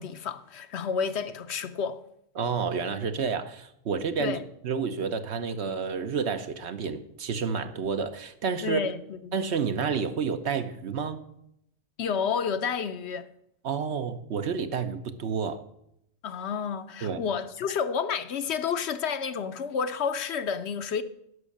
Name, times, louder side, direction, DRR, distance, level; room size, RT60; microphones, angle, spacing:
voice 1, 0.0-2.0 4.2-4.4 8.6-9.0 9.3-9.4 12.0-13.3 16.2-21.0, left 6 dB, 65° left, 0.9 m, -30 dB
voice 2, 2.4-4.4 4.6-8.8 9.3-11.2 13.6-15.6 17.0-17.2, right 6 dB, 65° right, 1.1 m, -30 dB
11.0 x 6.3 x 8.5 m
omnidirectional pair, 1.3 m